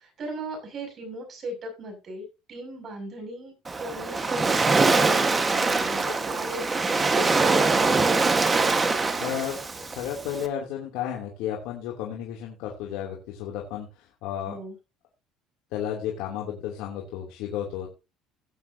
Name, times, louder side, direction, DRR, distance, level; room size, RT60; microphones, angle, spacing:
voice 1, 0.0-8.1 14.5-14.7, right 1 dB, 35° right, 4 dB, 6.4 m, -38 dB
Waves surf, 3.7-10.5, right 3 dB, 20° right, 1.4 m, -23 dB
voice 2, 9.2-14.6 15.7-17.9, left 9 dB, 80° left, -1 dB, 2.8 m, -33 dB
18.0 x 9.3 x 2.8 m, 0.28 s
cardioid pair, 140°, 0 cm